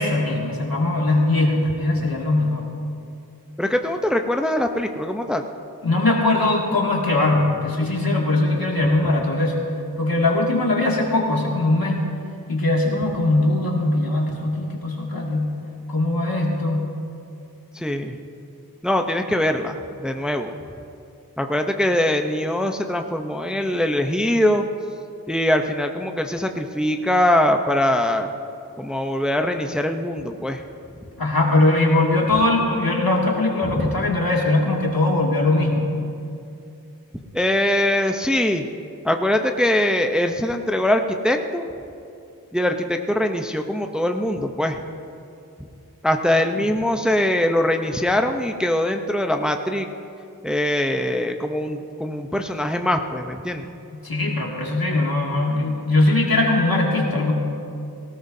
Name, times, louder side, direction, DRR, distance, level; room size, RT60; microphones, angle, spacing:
voice 1, 0.0-2.7 5.8-9.6 10.0-12.0 12.5-15.5 15.9-16.8 31.2-35.9 54.0-57.3, left 2 dB, 65° left, -2 dB, 2.4 m, -20 dB
voice 2, 3.6-5.5 17.7-18.2 18.8-20.6 21.4-24.7 25.3-28.3 28.8-30.6 33.7-34.0 37.3-38.6 39.0-41.7 42.5-44.8 46.0-49.9 50.4-53.7, left 1 dB, ahead, 5 dB, 0.7 m, -22 dB
18.5 x 17.5 x 2.7 m, 2.5 s
wide cardioid pair, 40°, 37 cm